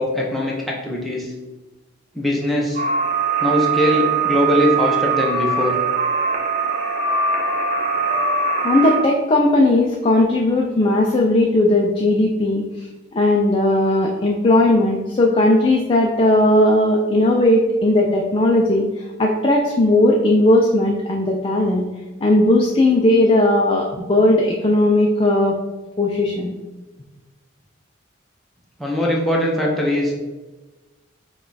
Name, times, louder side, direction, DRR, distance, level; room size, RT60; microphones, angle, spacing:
voice 1, 0.0-1.3 2.1-2.8 3.4-5.8 28.8-30.1, left 1 dB, ahead, -4 dB, 0.7 m, -21 dB
sound 1, 2.7-9.0, right 4 dB, 40° right, 0.9 m, -21 dB
voice 2, 8.6-12.6 13.1-18.9 19.2-21.8 22.2-25.5 26.0-26.5, left 1 dB, 25° left, -1 dB, 0.4 m, -17 dB
5.3 x 2.3 x 4.0 m, 1.2 s
head